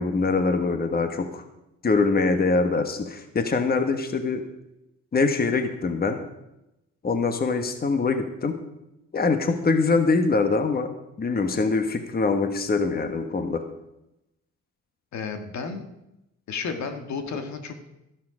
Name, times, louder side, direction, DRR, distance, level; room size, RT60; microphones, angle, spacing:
voice 1, 0.0-1.4 1.8-4.4 5.1-6.2 7.0-8.6 9.1-10.9 11.2-13.6, left 4 dB, 30° left, 7 dB, 1.3 m, -23 dB
voice 2, 15.1-15.8 16.5-17.9, left 5 dB, 65° left, 6 dB, 1.6 m, -32 dB
13.0 x 11.5 x 4.9 m, 0.90 s
cardioid pair, 90°, 30 cm